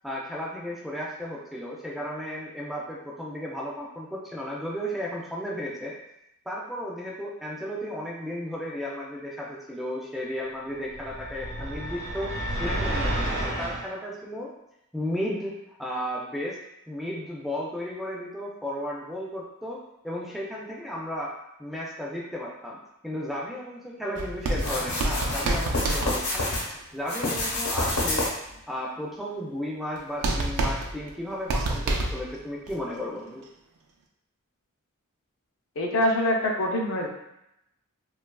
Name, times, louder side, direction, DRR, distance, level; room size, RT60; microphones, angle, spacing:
voice 1, 0.0-5.9 6.5-12.3 12.6-14.5 14.9-16.6 16.9-21.3 21.6-26.6 26.9-28.3 28.7-33.4, equal, ahead, -4 dB, 0.3 m, -34 dB
sound 1, 10.9-13.8, right 1 dB, 60° right, 0.8 m, -30 dB
sound 2, 24.1-26.7 30.0-30.1 30.2-32.4 32.7-32.8, right 2 dB, 80° right, 0.4 m, -28 dB
sound 3, 24.6-26.6 27.0-28.5, left 2 dB, 80° left, 0.9 m, -28 dB
voice 2, 35.8-37.1, left 1 dB, 60° left, 1 dB, 0.5 m, -24 dB
2.7 x 2.3 x 2.2 m, 0.83 s
head